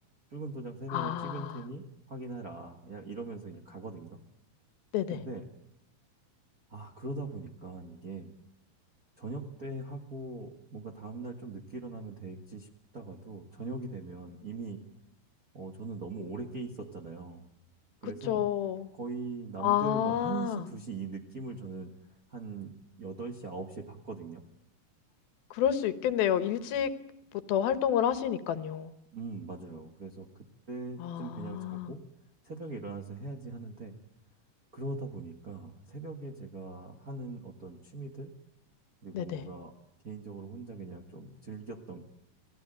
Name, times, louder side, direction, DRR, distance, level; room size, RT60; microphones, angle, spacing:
voice 1, 0.3-4.2 5.1-5.4 6.7-8.3 9.2-12.7 12.9-14.8 15.5-17.4 18.0-18.5 18.9-21.9 22.3-24.4 29.1-32.0 32.4-34.0 34.7-38.3 39.0-39.7 40.0-42.0, right 3 dB, 40° right, 1 dB, 1.3 m, -41 dB
voice 2, 0.9-1.5 4.9-5.2 18.3-18.9 19.6-20.6 25.5-26.9 27.3-28.9 31.0-31.9 39.1-39.4, left 10 dB, 80° left, 12 dB, 3.0 m, -29 dB
28.5 x 19.0 x 9.0 m, 0.80 s
omnidirectional pair, 4.3 m